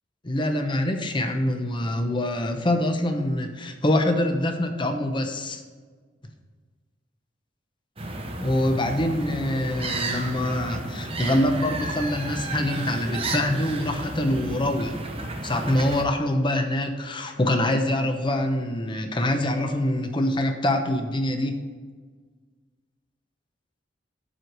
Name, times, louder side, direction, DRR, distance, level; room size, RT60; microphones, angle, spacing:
voice 1, 0.2-5.6 8.4-15.0 15.4-21.6, left 1 dB, 25° left, 5 dB, 0.8 m, -25 dB
sound 1, 8.0-16.0, right 2 dB, 30° right, 0.9 m, -32 dB
7.6 x 4.8 x 6.1 m, 1.5 s
head